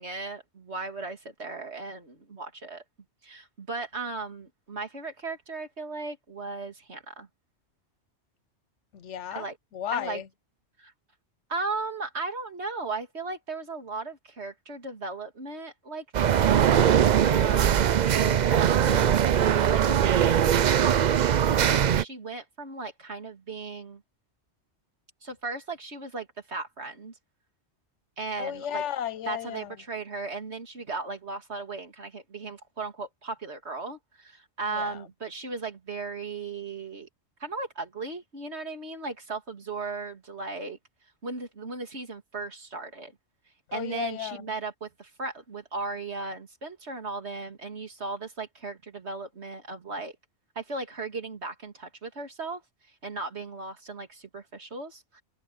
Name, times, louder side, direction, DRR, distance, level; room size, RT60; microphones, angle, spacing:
voice 1, 0.0-2.8 3.2-7.3 9.3-9.5 9.9-10.2 10.8-10.9 11.5-24.0 25.2-27.1 28.2-28.8 29.3-37.1 37.4-40.8 41.2-43.1 43.7-50.1 50.6-52.6 53.0-55.2, right 3 dB, 70° right, 3.0 m, -36 dB
voice 2, 8.9-10.3 28.4-29.8 34.7-35.1 43.7-44.5, left 10 dB, 85° left, 1.1 m, -34 dB
sound 1, 16.1-22.0, right 9 dB, 55° right, 0.5 m, -21 dB
omnidirectional pair, 1.2 m